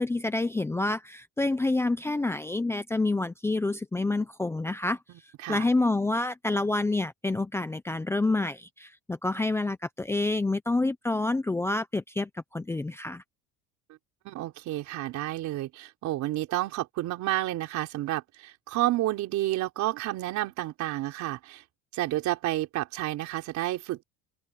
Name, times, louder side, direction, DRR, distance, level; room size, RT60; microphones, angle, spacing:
voice 1, 0.0-5.0 5.5-13.2, left 2 dB, 5° left, 0.7 m, -28 dB
voice 2, 14.2-21.6 21.9-24.0, right 15 dB, 55° right, 4.0 m, -30 dB
open air
cardioid pair, 150°, 34 cm